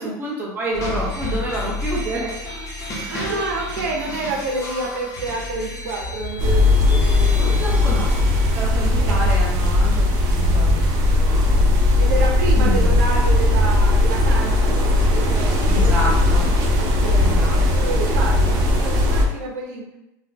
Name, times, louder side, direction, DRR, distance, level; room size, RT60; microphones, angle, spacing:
voice 1, 0.0-2.3 3.1-3.4 7.4-8.1 8.5-11.7 12.6-13.0 15.7-16.5 17.2-17.6, right 1 dB, 20° right, -5 dB, 1.2 m, -28 dB
sound 1, 0.7-8.6, left 2 dB, 30° left, 0.9 m, -31 dB
voice 2, 2.9-8.1 9.0-9.4 12.0-16.5 16.8-19.9, right 2 dB, 85° right, -1 dB, 0.8 m, -29 dB
sound 2, 6.4-19.2, left 2 dB, 45° right, 0.7 m, -17 dB
3.9 x 2.3 x 2.8 m, 0.90 s
supercardioid pair, 135°, 10 cm